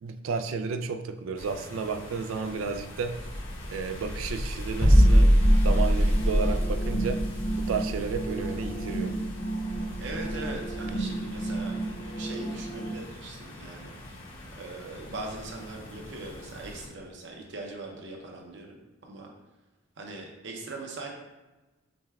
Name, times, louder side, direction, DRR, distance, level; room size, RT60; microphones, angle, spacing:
voice 1, 0.0-3.2 3.7-5.4 5.6-7.3 7.6-9.1, right 5 dB, 90° right, 8 dB, 0.4 m, -32 dB
sound 1, 1.3-16.9, left 1 dB, 80° left, 1.4 m, -42 dB
sound 2, 4.8-10.5 10.8-11.0, equal, 30° left, 0.8 m, -22 dB
sound 3, 4.9-12.9, right 2 dB, 65° left, 0.6 m, -34 dB
voice 2, 10.0-11.8 12.1-13.9 14.6-19.3 20.0-21.1, right 2 dB, 60° right, 1 dB, 0.8 m, -40 dB
6.1 x 2.3 x 3.5 m, 1.1 s
head